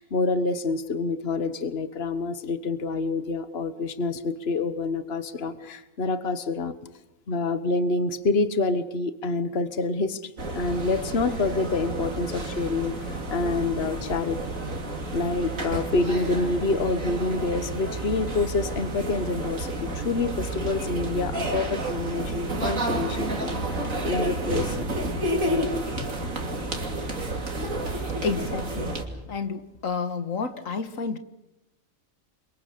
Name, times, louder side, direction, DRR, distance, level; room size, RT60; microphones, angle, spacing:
voice 1, 0.0-6.7 7.3-14.4 15.1-24.9 26.0-26.1, left 3 dB, 50° left, 1.6 m, -27 dB
sound 1, 10.4-29.0, right 1 dB, 75° right, 3.2 m, -30 dB
voice 2, 28.2-28.9 29.3-31.2, left 5 dB, 75° left, 1.8 m, -30 dB
28.5 x 24.5 x 6.8 m
omnidirectional pair, 1.4 m